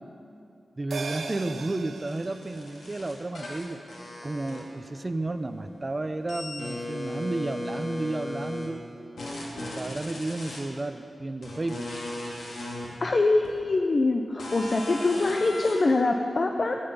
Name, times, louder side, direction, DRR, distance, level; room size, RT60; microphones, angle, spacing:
voice 1, 0.8-3.8 4.2-8.8 9.5-11.9, right 2 dB, 30° right, 9 dB, 0.7 m, -32 dB
sound 1, 0.9-5.6 5.9-6.0, right 4 dB, 85° right, 0.7 m, -41 dB
sound 2, 2.0-5.0 5.3-8.7 9.2-10.6 11.4-12.9 13.4-13.5 14.4-15.7, left 1 dB, 85° left, 2.8 m, -37 dB
voice 2, 13.0-16.8, left 2 dB, 45° left, 4 dB, 0.7 m, -24 dB
15.5 x 9.9 x 5.5 m, 2.7 s
wide cardioid pair, 85°, 0 cm